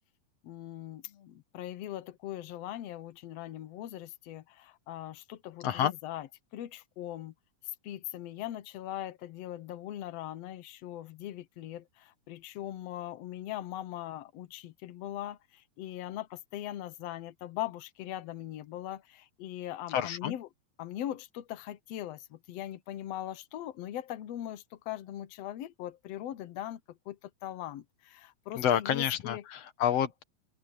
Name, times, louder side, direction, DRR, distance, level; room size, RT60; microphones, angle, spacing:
voice 1, 0.4-6.3 6.5-7.3 7.8-20.5 20.8-26.8 27.1-29.4, left 12 dB, 85° left, 1.4 m, -40 dB
voice 2, 19.9-20.4 28.6-30.2, left 10 dB, 55° left, 2.0 m, -29 dB
open air
omnidirectional pair, 4.2 m